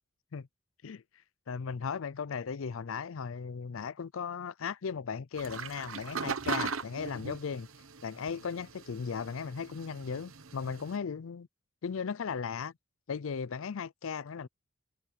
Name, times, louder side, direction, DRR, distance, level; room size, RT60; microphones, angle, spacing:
voice 1, 1.5-7.7 8.0-11.5 11.8-12.7 13.1-14.5, left 6 dB, 70° left, 0.5 m, -37 dB
sound 1, 5.4-11.0, right 5 dB, 75° right, 1.1 m, -39 dB
head